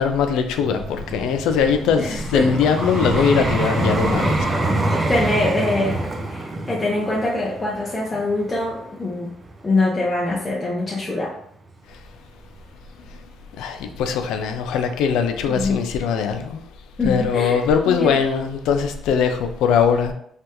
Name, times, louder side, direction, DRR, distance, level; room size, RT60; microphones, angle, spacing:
voice 1, 0.0-4.4 13.6-16.6 17.0-20.1, left 6 dB, 90° left, 7 dB, 0.3 m, -21 dB
Vehicle, 0.6-9.7 10.3-10.5, right 2 dB, 30° right, 0.5 m, -25 dB
voice 2, 2.0-2.6 3.1-3.3 4.9-9.3 9.6-11.3 15.5-15.8 17.0-17.6 17.9-18.2, left 2 dB, 25° left, -5 dB, 0.5 m, -24 dB
3.2 x 2.3 x 2.8 m, 0.68 s
cardioid pair, 105°, 0 cm